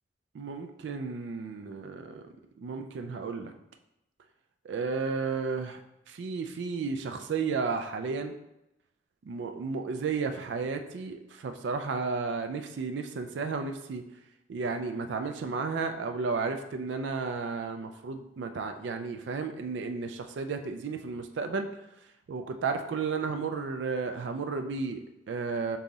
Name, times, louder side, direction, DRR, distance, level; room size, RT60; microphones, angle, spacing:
voice 1, 0.3-2.3 2.6-3.5 4.6-5.8 6.1-8.3 9.3-14.0 14.5-21.7 22.3-25.8, right 4 dB, 80° right, 6 dB, 0.4 m, -33 dB
5.5 x 2.4 x 3.8 m, 0.89 s
head